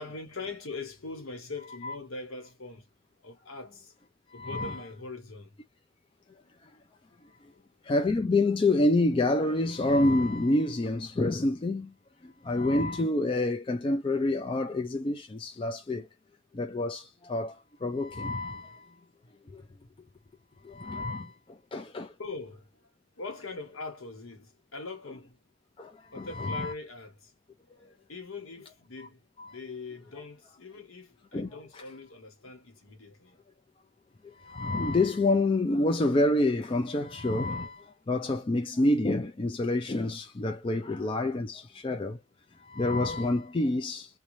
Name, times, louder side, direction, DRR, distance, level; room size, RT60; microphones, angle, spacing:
voice 1, 0.0-2.9 3.2-3.9 4.3-5.6 7.5-7.7 20.9-21.1 22.2-22.7 23.2-25.4 26.1-27.3 27.7-33.4 34.4-34.7, left 3 dB, 75° left, 1.0 m, -42 dB
voice 2, 4.3-4.8 7.9-11.9 12.2-16.1 16.5-17.5 17.8-18.8 19.5-19.6 20.6-21.3 21.7-22.1 25.8-26.7 29.4-29.5 31.3-31.5 31.7-31.8 34.5-42.2 42.7-44.1, left 2 dB, 25° left, 0.3 m, -27 dB
2.6 x 2.2 x 3.0 m
head